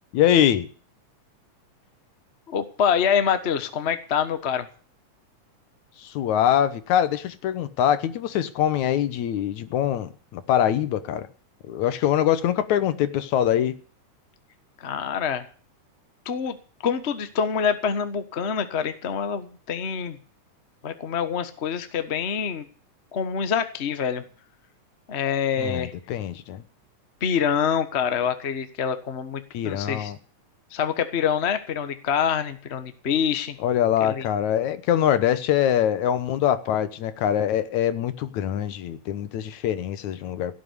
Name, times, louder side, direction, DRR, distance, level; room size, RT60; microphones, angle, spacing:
voice 1, 0.1-0.7 6.0-11.3 11.6-13.7 25.6-26.6 29.5-30.2 33.6-40.5, left 10 dB, 75° left, 2.4 m, -23 dB
voice 2, 2.5-4.7 14.8-15.5 16.2-16.6 16.8-20.2 20.8-22.7 23.1-24.2 25.1-25.9 27.2-30.1 30.7-33.6 34.0-34.3, left 7 dB, 55° left, 0.7 m, -26 dB
17.0 x 7.5 x 9.7 m
omnidirectional pair, 3.4 m